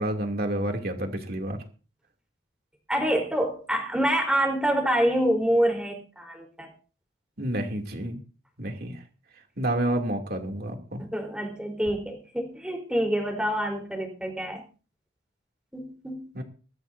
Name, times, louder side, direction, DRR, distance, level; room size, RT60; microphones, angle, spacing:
voice 1, 0.0-1.6 7.4-8.2 8.6-9.0 9.6-11.0 16.3-16.4, right 1 dB, 50° right, 3 dB, 2.8 m, -29 dB
voice 2, 2.9-6.7 11.1-14.6 15.7-16.3, right 1 dB, 5° right, 2 dB, 3.9 m, -26 dB
21.0 x 14.0 x 2.7 m, 0.36 s
head